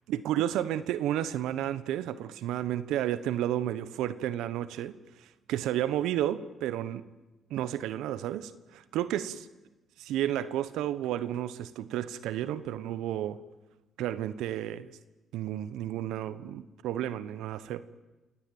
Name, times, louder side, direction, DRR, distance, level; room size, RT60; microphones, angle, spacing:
voice 1, 0.0-7.0 7.5-9.4 10.0-13.4 14.0-14.9 15.3-18.0, right 12 dB, 90° right, 15 dB, 1.1 m, -32 dB
28.0 x 17.5 x 9.4 m, 1.1 s
cardioid pair, 90°, 0 cm